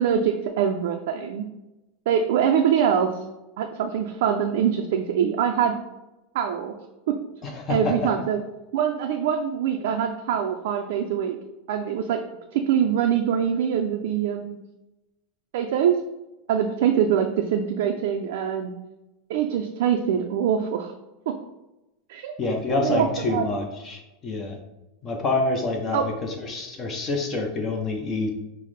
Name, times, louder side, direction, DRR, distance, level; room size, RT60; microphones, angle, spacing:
voice 1, 0.0-1.4 2.1-3.1 3.6-5.7 6.3-6.7 7.1-7.2 7.7-8.4 8.7-11.4 11.7-12.2 12.5-14.6 15.5-15.9 16.5-18.7 19.3-20.9 21.3-21.4 22.1-23.5 25.9-26.1, right 8 dB, 70° right, 4 dB, 0.3 m, -24 dB
voice 2, 7.4-8.1 22.4-24.6 25.0-28.3, left 3 dB, 25° left, 2 dB, 0.6 m, -27 dB
5.6 x 2.0 x 3.2 m, 0.97 s
supercardioid pair, 150°, 0 cm